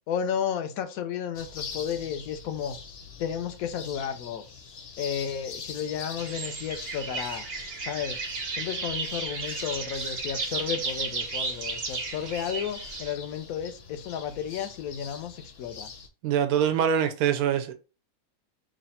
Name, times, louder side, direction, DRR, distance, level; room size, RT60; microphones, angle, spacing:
voice 1, 0.1-2.8 3.2-4.4 5.0-7.5 7.8-8.2 8.5-15.9, left 8 dB, 80° left, 1.0 m, -33 dB
sound 1, 1.3-16.1, left 5 dB, 55° left, 0.8 m, -44 dB
sound 2, 6.2-13.1, right 4 dB, 50° right, 0.9 m, -34 dB
voice 2, 16.2-17.7, right 8 dB, 85° right, 1.1 m, -24 dB
3.1 x 2.5 x 4.1 m
omnidirectional pair, 1.5 m